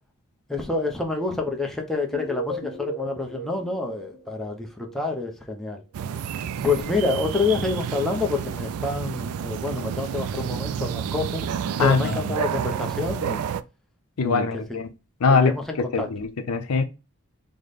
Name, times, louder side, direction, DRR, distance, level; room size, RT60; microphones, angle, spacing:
voice 1, 0.5-5.8 6.6-11.5 11.8-13.4 14.2-14.8 15.3-16.1, left 3 dB, ahead, 0.6 m, -28 dB
sound 1, 2.1-5.1, right 1 dB, 60° left, 1.3 m, -36 dB
sound 2, 5.9-13.6, right 7 dB, 75° right, 0.3 m, -30 dB
voice 2, 11.8-12.4 14.2-14.9 15.2-15.5 15.8-16.8, left 4 dB, 80° left, 0.6 m, -22 dB
4.9 x 2.1 x 3.9 m
head